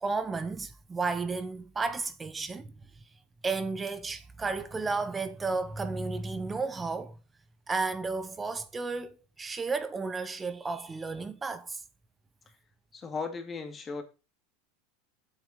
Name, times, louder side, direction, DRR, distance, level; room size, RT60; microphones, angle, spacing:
voice 1, 0.0-2.7 3.4-7.2 7.7-11.8, right 4 dB, 15° right, 1.0 m, -33 dB
voice 2, 12.9-14.0, left 4 dB, 20° left, 2.2 m, -36 dB
7.8 x 7.6 x 5.5 m
supercardioid pair, 125°, 0 cm